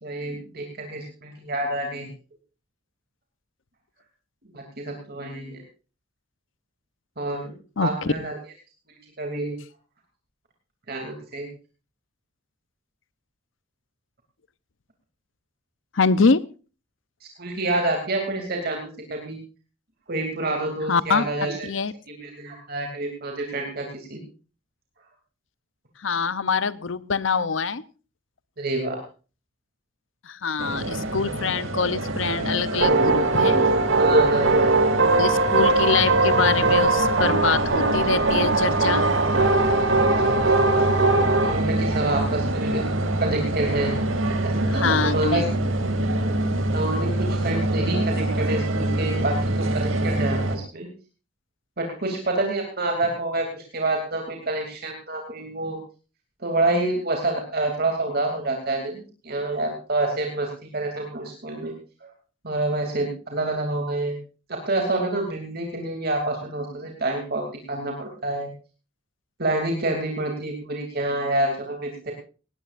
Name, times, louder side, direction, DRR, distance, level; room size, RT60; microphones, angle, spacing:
voice 1, 0.0-2.1 4.5-5.6 7.2-7.5 7.8-8.4 8.9-9.6 10.9-11.5 17.2-19.4 20.1-21.7 22.1-24.2 28.6-29.0 34.0-35.0 40.3-41.0 41.4-42.8 43.2-43.9 44.4-45.5 45.8-46.4 46.7-50.9 51.8-55.8 56.4-61.7 62.0-62.1 62.4-64.2 64.5-68.5 69.4-72.1, right 2 dB, 50° right, 2 dB, 2.9 m, -28 dB
voice 2, 7.8-8.1 15.9-16.4 20.9-21.2 21.6-21.9 26.0-27.8 30.3-33.7 35.2-39.1 44.7-45.4, left 5 dB, 75° left, 16 dB, 0.8 m, -24 dB
sound 1, 30.6-50.6, right 1 dB, 90° right, 2.6 m, -26 dB
sound 2, 32.8-41.5, right 2 dB, 65° right, 2.6 m, -20 dB
19.0 x 18.5 x 2.6 m, 0.35 s
head